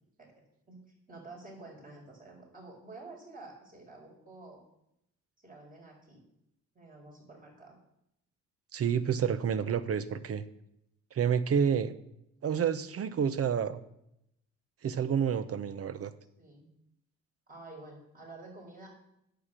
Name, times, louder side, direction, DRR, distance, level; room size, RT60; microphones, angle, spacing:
voice 1, 0.2-0.8 1.1-4.6 5.4-6.2 6.7-7.8 16.4-16.7 17.5-19.0, right 2 dB, 30° right, -1 dB, 4.5 m, -50 dB
voice 2, 8.7-10.4 11.1-11.9 12.4-13.8 14.8-16.1, right 7 dB, 50° right, 14 dB, 0.8 m, -29 dB
9.4 x 6.9 x 7.5 m, 0.81 s
cardioid pair, 90°, 30 cm